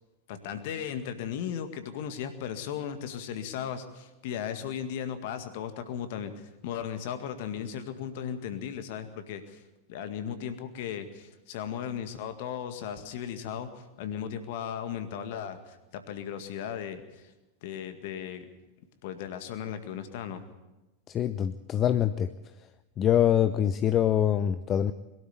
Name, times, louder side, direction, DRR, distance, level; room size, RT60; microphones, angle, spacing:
voice 1, 0.3-6.3 6.6-9.6 9.9-13.7 14.0-17.3 17.6-18.5 19.0-20.4, left 8 dB, 50° left, 9 dB, 1.9 m, -36 dB
voice 2, 21.1-22.3 23.0-24.9, left 10 dB, 30° left, 12 dB, 0.6 m, -24 dB
22.0 x 12.5 x 9.6 m, 1.1 s
figure-of-eight pair, 90°, 0 cm